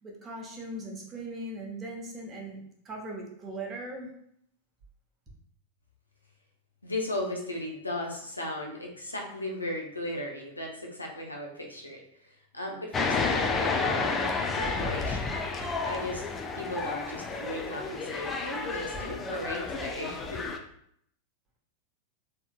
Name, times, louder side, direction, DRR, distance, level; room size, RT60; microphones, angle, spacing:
voice 1, 0.0-2.6 2.8-4.1, right 1 dB, 25° right, -1 dB, 0.9 m, -39 dB
voice 2, 6.8-14.3 14.5-15.4 15.8-16.2 16.5-20.4, left 1 dB, 80° left, 1 dB, 0.6 m, -36 dB
sound 1, 12.9-20.6, left 4 dB, 20° left, 0.4 m, -31 dB
3.4 x 2.7 x 2.3 m, 0.70 s
figure-of-eight pair, 90°, 0 cm